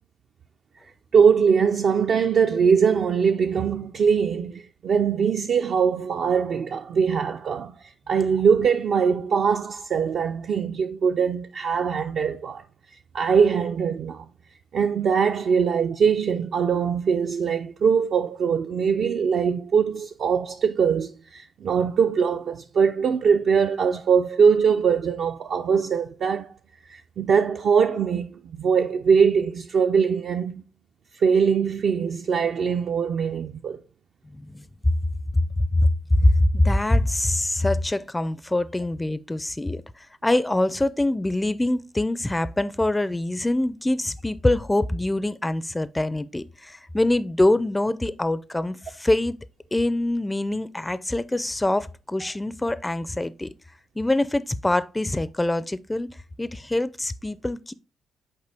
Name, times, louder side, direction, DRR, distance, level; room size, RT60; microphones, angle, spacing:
voice 1, 1.1-12.7 13.1-14.3 14.7-26.5 26.9-30.6 31.2-33.8, right 6 dB, 60° right, 0.4 m, -22 dB
voice 2, 34.3-34.6 35.3-35.4 35.7-49.4 49.7-53.5 54.0-56.1 56.4-57.7, left 1 dB, 10° left, 0.4 m, -24 dB
6.6 x 4.3 x 3.4 m
cardioid pair, 90°, 0 cm